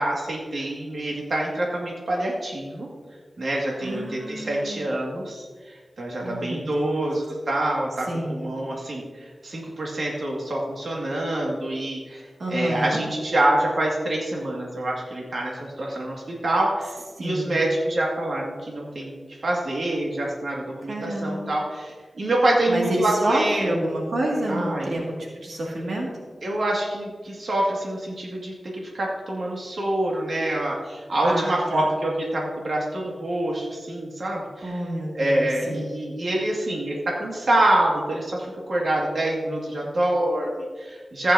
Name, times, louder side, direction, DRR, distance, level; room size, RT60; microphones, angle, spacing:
voice 1, 0.0-2.9 3.4-16.9 17.2-23.7 24.5-25.0 26.4-34.8 35.1-41.3, right 1 dB, 65° right, -3 dB, 2.1 m, -26 dB
voice 2, 3.8-4.9 6.2-7.1 8.1-8.4 12.4-13.0 17.2-17.6 20.9-21.5 22.7-26.1 31.2-31.9 34.6-36.0, right 1 dB, 80° right, -2 dB, 2.2 m, -29 dB
15.0 x 9.0 x 2.8 m, 1.5 s
wide cardioid pair, 90°, 0 cm